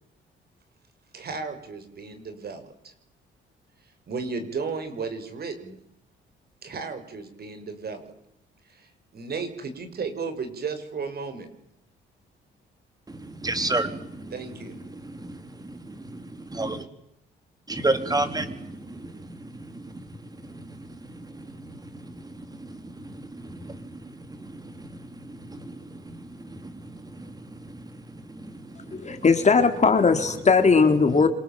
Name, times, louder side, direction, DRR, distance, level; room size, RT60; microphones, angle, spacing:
voice 1, 1.1-2.9 4.1-5.8 6.6-8.1 8.7-11.5 14.3-14.8, right 4 dB, 50° right, 8 dB, 6.1 m, -34 dB
voice 2, 13.1-14.3 14.9-16.8 17.7-29.3, right 2 dB, 20° right, 9 dB, 4.0 m, -34 dB
voice 3, 28.8-31.3, left 4 dB, 35° left, 8 dB, 3.6 m, -19 dB
27.0 x 25.0 x 7.6 m, 0.79 s
cardioid pair, 90°, 20 cm